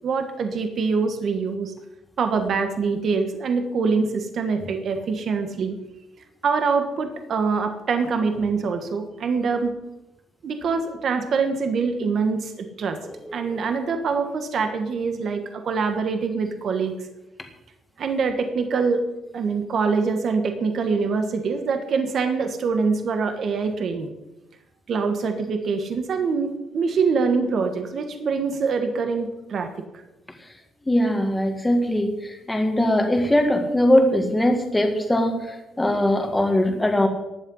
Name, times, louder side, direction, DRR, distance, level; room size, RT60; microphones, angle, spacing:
voice 1, 0.0-1.7 2.2-5.8 6.4-9.7 10.4-13.0 13.3-16.9 18.0-19.0 19.3-24.1 24.9-29.7, right 5 dB, 45° right, 6 dB, 1.6 m, -24 dB
voice 2, 30.9-32.1 32.5-35.4 35.8-37.1, left 1 dB, 10° left, 4 dB, 1.9 m, -20 dB
15.5 x 11.0 x 5.6 m, 0.95 s
cardioid pair, 175°, 0 cm